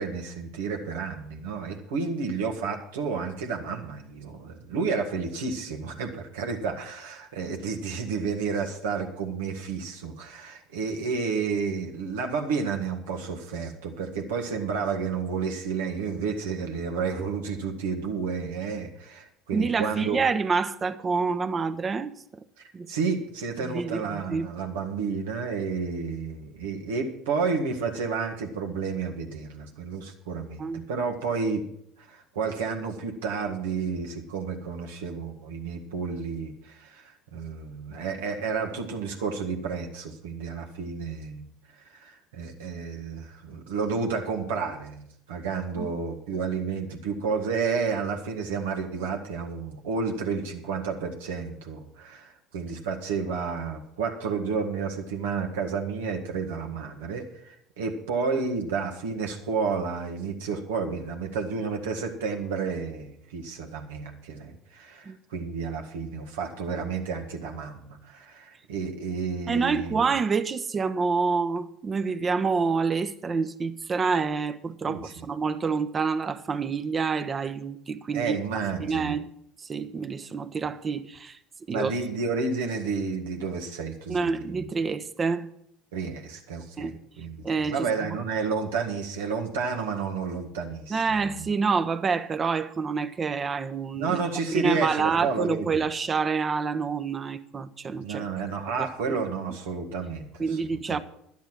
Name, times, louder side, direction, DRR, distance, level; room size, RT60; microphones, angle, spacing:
voice 1, 0.0-20.2 22.6-31.6 32.0-41.4 41.8-70.0 74.9-75.1 78.1-79.2 81.7-84.6 85.9-91.5 93.9-95.8 98.0-100.6 100.9-101.0, right 5 dB, 80° right, 1.8 m, -31 dB
voice 2, 19.5-22.1 22.7-22.9 23.6-24.5 30.6-30.8 45.8-45.9 65.0-65.2 69.5-78.4 78.8-79.3 79.6-81.4 81.7-81.9 84.1-85.5 86.8-87.0 87.4-87.9 90.9-94.2 94.5-98.2 98.8-99.1 100.4-101.0, right 5 dB, 35° right, 1.0 m, -27 dB
11.5 x 10.5 x 6.1 m
hypercardioid pair, 70°, 0 cm